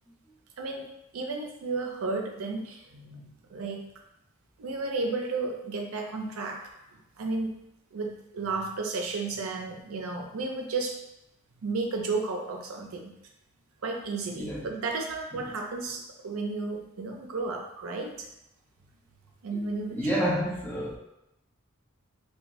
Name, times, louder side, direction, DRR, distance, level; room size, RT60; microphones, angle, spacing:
voice 1, 0.6-3.9 4.6-7.6 7.9-11.0 11.6-13.2 13.8-18.3 19.4-20.4, right 3 dB, 75° right, 2 dB, 0.5 m, -33 dB
voice 2, 14.4-14.7 19.9-21.0, equal, 10° left, -4 dB, 0.4 m, -29 dB
2.6 x 2.2 x 2.9 m, 0.85 s
head